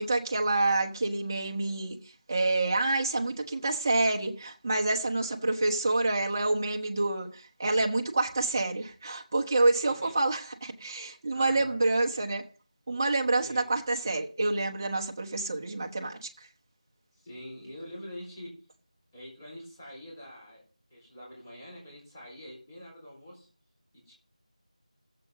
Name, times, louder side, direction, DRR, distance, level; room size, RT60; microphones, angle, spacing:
voice 1, 0.0-2.0 2.3-12.4 12.9-16.3, right 2 dB, 25° right, 1.1 m, -28 dB
voice 2, 5.2-5.7 9.8-10.1 11.3-11.8 13.4-13.7 17.2-18.6 19.1-20.6 20.9-23.5 24.1-24.2, equal, 20° left, 4.3 m, -45 dB
16.0 x 7.8 x 3.7 m
figure-of-eight pair, 175°, 4 cm